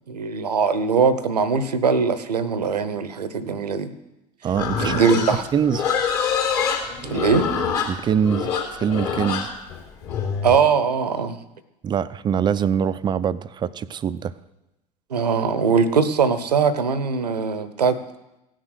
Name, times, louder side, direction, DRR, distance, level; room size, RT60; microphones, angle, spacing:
voice 1, 0.1-3.9 4.8-5.5 7.0-7.5 10.4-11.4 15.1-18.0, right 5 dB, 75° right, 15 dB, 0.8 m, -21 dB
voice 2, 4.4-5.0 5.5-5.9 7.9-9.5 11.8-14.3, right 8 dB, 20° right, 15 dB, 0.4 m, -23 dB
Livestock farm animals working animals, 4.5-10.6, left 6 dB, 55° left, 3.2 m, -25 dB
16.5 x 6.4 x 6.4 m, 0.94 s
figure-of-eight pair, 70°, 21 cm